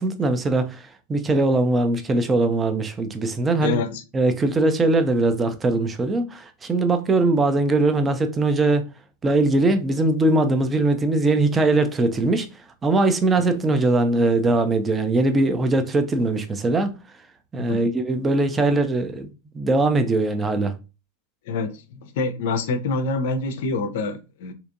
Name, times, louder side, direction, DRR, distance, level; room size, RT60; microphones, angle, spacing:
voice 1, 0.0-3.8 4.1-8.8 9.2-12.5 12.8-16.9 17.5-19.3 19.5-20.7, right 2 dB, 15° right, 0.5 m, -21 dB
voice 2, 3.6-4.0 13.4-13.8 17.7-17.8 21.5-24.5, left 3 dB, 55° left, 0.5 m, -26 dB
3.4 x 2.8 x 2.4 m
figure-of-eight pair, 90°, 0 cm